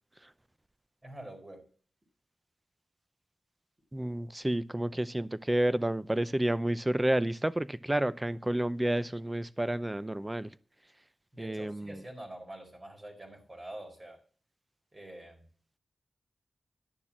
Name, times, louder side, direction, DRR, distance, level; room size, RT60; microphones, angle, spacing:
voice 1, 1.0-1.7 11.3-14.2 14.9-15.5, right 1 dB, 30° right, 4.7 m, -46 dB
voice 2, 3.9-10.5 11.4-12.0, right 1 dB, 15° right, 0.7 m, -30 dB
12.0 x 6.8 x 7.4 m
cardioid pair, 65°, 0 cm